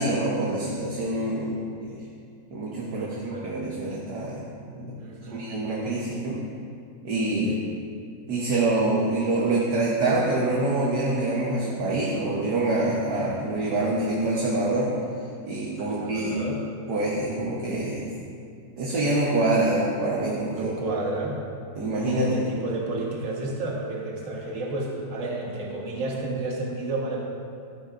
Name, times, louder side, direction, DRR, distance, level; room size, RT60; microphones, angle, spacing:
voice 1, 0.0-2.0 2.5-4.5 4.8-5.0 5.3-6.4 7.0-7.6 8.3-14.9 15.4-16.4 16.9-18.1 18.8-20.7 21.8-22.4, right 2 dB, 60° right, -4 dB, 1.7 m, -26 dB
voice 2, 2.9-3.6 5.0-5.4 7.4-7.6 15.8-16.6 20.5-21.4 22.3-27.2, right 2 dB, 45° right, -2 dB, 1.7 m, -31 dB
13.0 x 11.5 x 2.6 m, 2.4 s
omnidirectional pair, 2.0 m